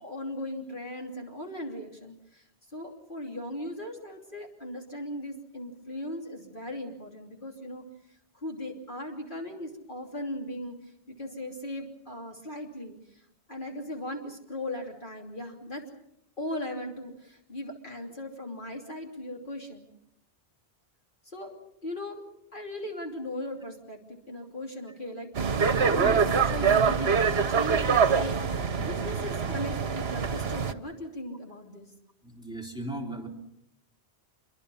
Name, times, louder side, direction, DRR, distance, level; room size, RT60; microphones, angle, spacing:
voice 1, 0.0-7.8 8.3-10.8 11.1-13.2 13.5-15.9 16.4-19.9 21.2-21.5 21.8-22.2 22.5-31.9, left 1 dB, 50° left, 1 dB, 3.3 m, -38 dB
sound 1, 25.3-30.7, right 6 dB, 65° right, 1.3 m, -25 dB
voice 2, 32.2-33.3, right 1 dB, 5° right, 0 dB, 3.9 m, -37 dB
27.0 x 24.0 x 5.6 m, 0.76 s
omnidirectional pair, 1.1 m